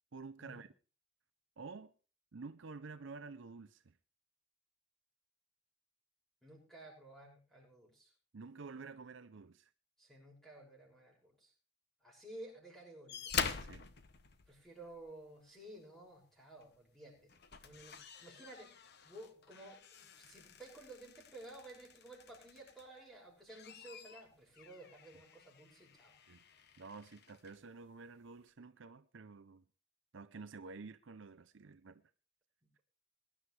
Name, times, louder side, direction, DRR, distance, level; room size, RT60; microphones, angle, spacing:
voice 1, 0.1-0.7 1.6-1.9 2.3-3.9 8.3-9.7 13.6-13.8 26.3-26.4 26.8-29.6 30.1-32.0, right 4 dB, 60° right, 0.6 m, -50 dB
voice 2, 6.4-8.1 10.0-11.5 12.0-13.3 14.5-17.3 17.6-18.7 19.0-19.8 20.1-26.1, right 1 dB, ahead, 6.3 m, -54 dB
sound 1, 13.1-15.1 16.6-16.8 17.2-23.0 23.4-27.6 28.5-28.6, left 6 dB, 50° left, 1.0 m, -46 dB
21.5 x 11.5 x 3.3 m
head